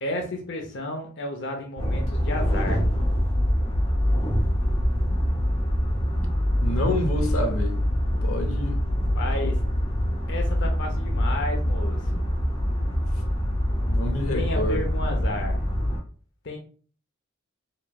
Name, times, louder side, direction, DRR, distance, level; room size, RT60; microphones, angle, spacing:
voice 1, 0.0-2.9 9.1-9.6 10.3-12.3 14.3-15.6 16.4-16.6, left 1 dB, 60° left, 0.7 m, -32 dB
sound 1, 1.8-16.0, equal, 25° left, 1.0 m, -24 dB
voice 2, 6.6-7.8 8.2-8.8 9.4-9.5 13.9-14.8, left 1 dB, 90° left, 0.9 m, -28 dB
4.8 x 3.1 x 2.3 m
head